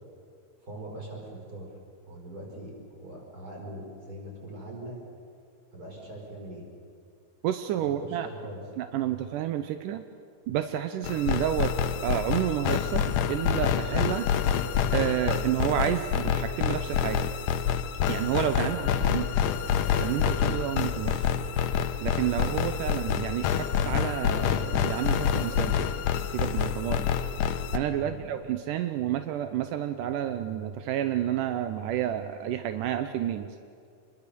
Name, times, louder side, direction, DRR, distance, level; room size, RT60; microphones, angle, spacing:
voice 1, 0.6-1.7 2.1-5.0 5.7-6.6 7.8-8.6 27.9-28.1, right 1 dB, 25° right, -1 dB, 5.8 m, -41 dB
voice 2, 7.4-8.3 8.8-10.0 10.5-11.7 12.0-14.3 14.9-17.3 18.1-19.3 20.0-21.2 22.0-25.8 26.3-27.1 27.7-33.6, right 11 dB, 80° right, 8 dB, 2.4 m, -30 dB
sound 1, 11.0-27.8, left 8 dB, 80° left, 2.5 m, -27 dB
26.5 x 21.5 x 6.9 m, 2.2 s
omnidirectional pair, 3.8 m